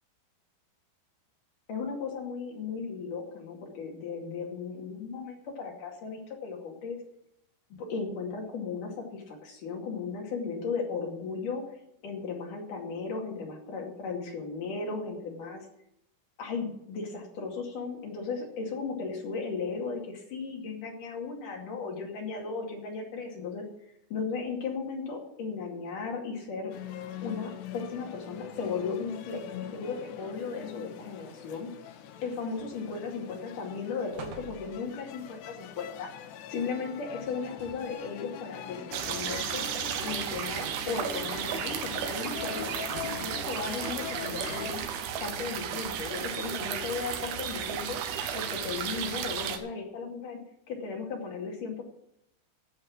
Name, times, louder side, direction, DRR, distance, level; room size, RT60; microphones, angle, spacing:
voice 1, 1.7-7.0 7.7-11.6 12.0-15.7 16.4-23.6 24.1-26.7 27.2-29.4 29.7-31.7 32.2-36.1 36.5-39.6 40.0-44.8 45.2-48.0 48.3-50.4 50.7-51.8, left 5 dB, 50° left, 0 dB, 3.5 m, -36 dB
sound 1, 26.7-44.8, left 9 dB, 75° left, 2.9 m, -43 dB
sound 2, 32.6-33.1 33.5-33.7 34.1-35.1 37.2-38.1 38.8-38.9, right 4 dB, 70° right, 3.8 m, -47 dB
sound 3, 38.9-49.6, right 8 dB, 90° right, 3.7 m, -34 dB
12.5 x 8.5 x 7.6 m, 0.79 s
omnidirectional pair, 5.4 m